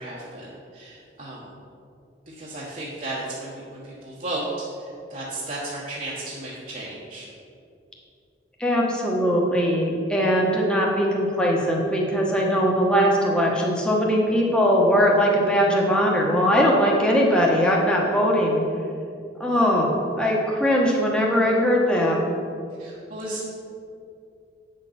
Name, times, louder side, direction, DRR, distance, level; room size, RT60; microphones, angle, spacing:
voice 1, 0.0-1.5 2.3-4.5 4.8-7.3 22.8-23.5, right 2 dB, 45° right, -6 dB, 1.2 m, -34 dB
voice 2, 8.6-18.6 19.4-22.3, equal, 5° left, -3 dB, 1.2 m, -20 dB
8.7 x 6.5 x 5.8 m, 2.5 s
head